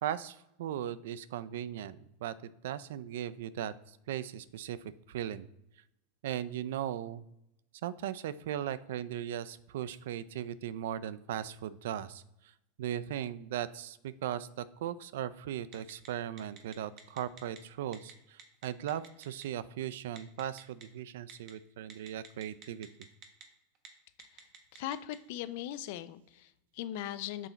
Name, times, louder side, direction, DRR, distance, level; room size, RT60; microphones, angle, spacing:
voice 1, 0.0-2.4 2.6-5.5 6.2-7.2 7.8-12.5 12.8-22.9, right 11 dB, 70° right, 16 dB, 0.3 m, -38 dB
Telephone, 15.7-16.1 16.4-17.6 17.9-18.1 18.4-19.4 20.2-20.8 21.3-21.5 21.9-23.4 23.7-23.9 24.2-25.2, right 7 dB, 30° right, 0.8 m, -50 dB
voice 2, 24.7-27.5, left 12 dB, 50° left, 14 dB, 0.4 m, -39 dB
6.1 x 4.2 x 3.9 m, 0.85 s
supercardioid pair, 175°, 0 cm